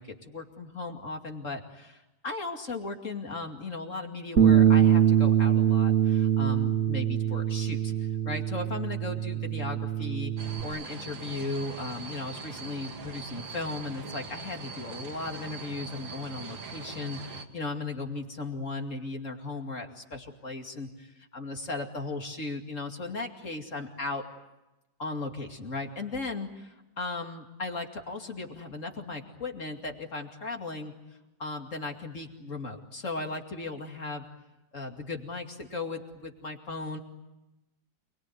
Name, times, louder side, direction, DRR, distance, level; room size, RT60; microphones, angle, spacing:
voice 1, 0.0-10.3 10.6-24.2 25.0-30.9 31.4-34.2 34.7-37.0, left 3 dB, 40° left, 3 dB, 2.8 m, -36 dB
Bass guitar, 4.4-10.6, right 10 dB, 45° right, 2.6 m, -23 dB
sound 1, 10.4-17.5, right 4 dB, 75° right, 2.6 m, -42 dB
28.5 x 21.5 x 9.5 m, 0.99 s
omnidirectional pair, 2.1 m